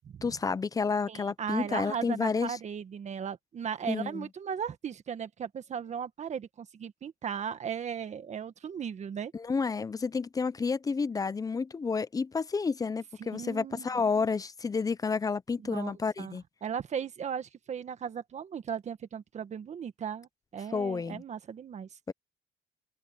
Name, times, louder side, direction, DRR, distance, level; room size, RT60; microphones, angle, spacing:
voice 1, 0.2-2.6 3.9-4.3 9.3-16.4 20.7-21.2 22.1-22.2, left 5 dB, 20° left, 0.6 m, -30 dB
voice 2, 1.1-9.3 13.2-14.0 15.6-21.9, right 7 dB, 45° right, 1.7 m, -37 dB
cardioid pair, 110°, 17 cm